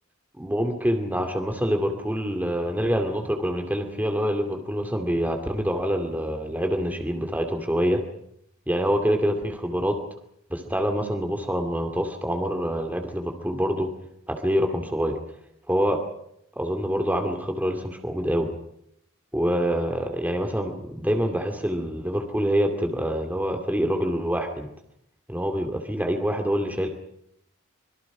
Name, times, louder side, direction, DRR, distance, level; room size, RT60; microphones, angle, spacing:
voice 1, 0.4-8.0 8.7-10.0 10.5-13.9 14.3-15.2 15.7-16.0 16.6-18.5 19.3-24.7 25.3-26.9, equal, 10° right, 5 dB, 2.4 m, -26 dB
25.5 x 23.0 x 6.0 m, 0.74 s
head